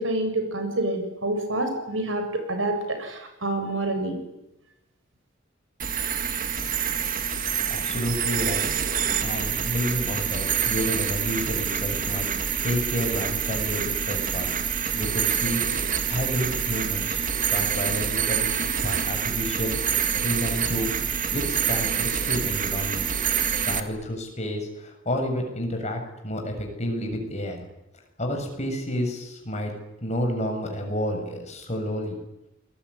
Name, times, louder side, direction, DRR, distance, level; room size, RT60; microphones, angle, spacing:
voice 1, 0.0-4.2, right 2 dB, 75° right, 7 dB, 7.3 m, -27 dB
sound 1, 5.8-23.8, right 7 dB, 45° right, 2.2 m, -26 dB
voice 2, 7.7-8.7 9.2-12.3 12.6-14.5 14.9-15.6 16.1-17.2 17.5-18.4 18.8-19.8 20.1-20.9 21.3-23.2 23.6-27.6 28.2-29.7 30.0-32.2, equal, 35° left, 3 dB, 7.2 m, -30 dB
28.0 x 21.5 x 9.9 m, 0.90 s
head